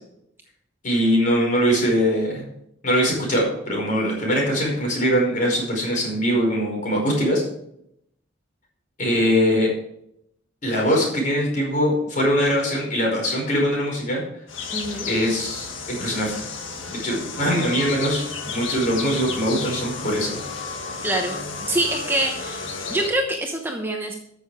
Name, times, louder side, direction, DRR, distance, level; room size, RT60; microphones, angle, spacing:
voice 1, 0.8-2.4 2.8-7.4 9.0-9.7 10.6-14.2 15.1-16.5 16.9-20.4, equal, 40° left, -1 dB, 5.0 m, -22 dB
sound 1, 14.5-23.1, left 4 dB, 80° left, 1.7 m, -33 dB
voice 2, 14.7-15.1 21.0-24.1, right 1 dB, 10° right, 2 dB, 0.9 m, -25 dB
13.5 x 6.7 x 4.9 m, 0.74 s
head